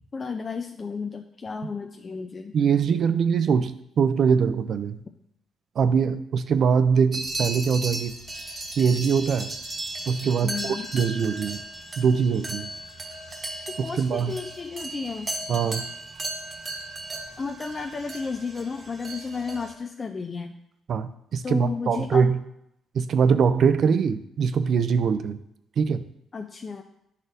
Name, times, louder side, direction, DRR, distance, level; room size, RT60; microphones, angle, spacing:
voice 1, 0.1-2.6 10.4-10.9 13.8-15.3 17.4-20.6 21.4-22.3 26.3-26.8, left 5 dB, 35° left, 4 dB, 0.4 m, -33 dB
voice 2, 2.5-5.0 5.8-8.1 8.8-9.5 10.1-11.6 12.0-12.7 14.0-14.3 15.5-15.8 20.9-22.4 22.9-25.4 25.8-26.0, right 6 dB, 60° right, 12 dB, 0.4 m, -22 dB
sound 1, 7.1-19.7, right 2 dB, 30° right, 1.1 m, -36 dB
10.5 x 4.1 x 2.6 m, 0.79 s
cardioid pair, 90°, 0 cm